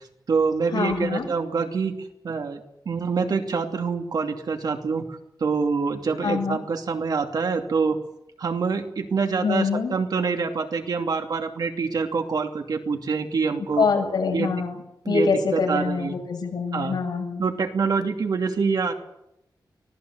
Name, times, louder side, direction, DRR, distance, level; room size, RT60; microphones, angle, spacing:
voice 1, 0.0-8.0 8.4-13.9 14.3-14.5 15.0-16.2 16.7-17.0 17.4-18.9, right 5 dB, 60° right, 4 dB, 2.7 m, -26 dB
voice 2, 0.7-1.3 6.2-6.6 9.4-9.9 13.8-14.8 15.1-17.4, left 5 dB, 70° left, 2 dB, 7.2 m, -24 dB
25.0 x 18.5 x 8.0 m, 0.82 s
wide cardioid pair, 165°, 8 cm